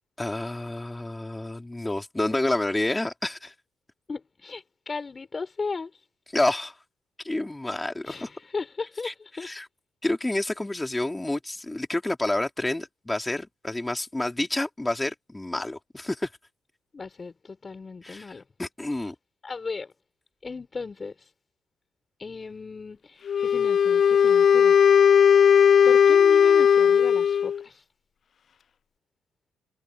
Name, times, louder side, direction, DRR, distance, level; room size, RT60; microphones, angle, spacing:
voice 1, 0.2-3.5 6.3-6.8 7.2-8.3 9.0-9.1 9.4-9.6 10.0-16.3 18.0-18.3 18.6-19.1, left 2 dB, 15° left, 4.3 m, -29 dB
voice 2, 4.1-6.0 8.1-9.5 16.9-18.4 18.9-19.1 19.4-19.9 20.4-21.3 22.2-25.0 25.8-27.8, left 4 dB, 30° left, 5.6 m, -36 dB
Wind instrument woodwind instrument, 23.3-27.6, left 8 dB, 55° left, 0.3 m, -17 dB
cardioid pair, 90°, 0 cm